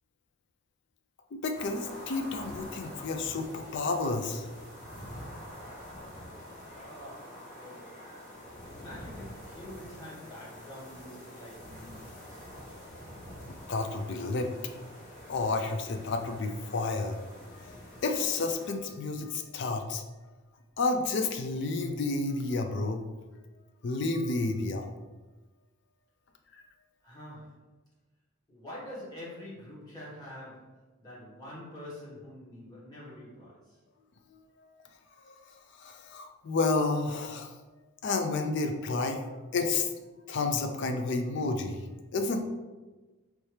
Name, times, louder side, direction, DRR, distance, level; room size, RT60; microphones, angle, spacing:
voice 1, 1.3-4.5 13.7-14.5 15.3-17.2 17.6-20.0 20.8-23.2 23.8-24.9 34.3-34.8 35.2-35.3 35.8-37.5 38.0-39.2 39.5-39.9 40.3-41.9 42.1-42.4, left 3 dB, 55° left, 5 dB, 0.4 m, -31 dB
sound 1, 1.5-18.7, equal, 40° left, 1.3 m, -46 dB
voice 2, 6.7-8.0 8.6-12.5 27.0-27.7 28.5-33.8, left 1 dB, 20° left, -8 dB, 1.4 m, -46 dB
4.5 x 2.8 x 3.2 m, 1.2 s
head